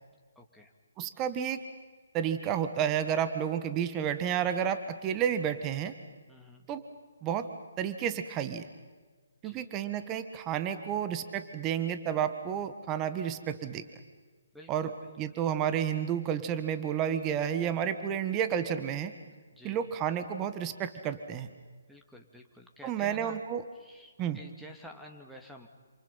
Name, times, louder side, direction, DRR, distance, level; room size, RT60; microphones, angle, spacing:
voice 1, 0.4-0.7 6.3-6.7 9.4-9.7 14.5-14.9 19.5-19.8 21.9-23.4 23.7-25.7, equal, ahead, 2 dB, 2.4 m, -50 dB
voice 2, 1.0-1.6 2.1-5.9 6.7-6.8 7.2-7.5 7.8-8.7 9.4-13.8 14.7-14.9 15.2-19.1 19.6-21.5 22.8-23.6 24.2-24.4, right 9 dB, 20° right, 10 dB, 1.5 m, -31 dB
28.5 x 27.5 x 5.7 m, 1.4 s
figure-of-eight pair, 150°, 0 cm